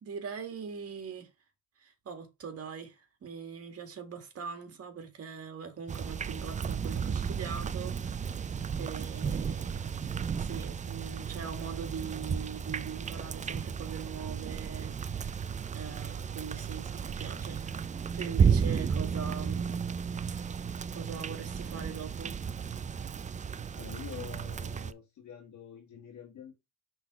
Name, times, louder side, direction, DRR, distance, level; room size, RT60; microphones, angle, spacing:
voice 1, 0.0-1.3 1.8-17.8 18.1-19.8 20.3-20.6 20.9-22.3, right 6 dB, 50° right, 1.9 m, -42 dB
sound 1, 5.9-24.9, right 6 dB, 25° right, 0.4 m, -33 dB
voice 2, 23.7-26.5, left 9 dB, 70° left, 1.5 m, -46 dB
5.7 x 3.9 x 4.8 m
cardioid pair, 90°, 30 cm